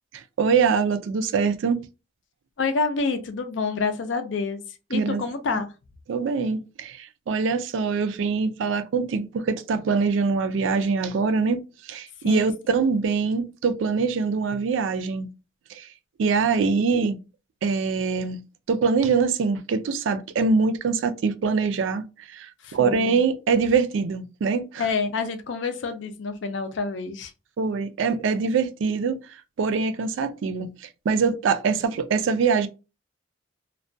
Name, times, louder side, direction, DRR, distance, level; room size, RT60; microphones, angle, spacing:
voice 1, 0.1-1.8 4.9-5.2 6.1-15.3 15.7-15.9 16.2-17.2 17.6-18.4 18.7-24.9 27.6-29.2 29.6-32.7, right 5 dB, 80° right, 0.3 m, -24 dB
voice 2, 2.6-4.6 4.9-5.7 12.2-12.5 22.6-23.2 24.8-27.3, left 4 dB, 70° left, 0.4 m, -28 dB
2.2 x 2.2 x 2.5 m
head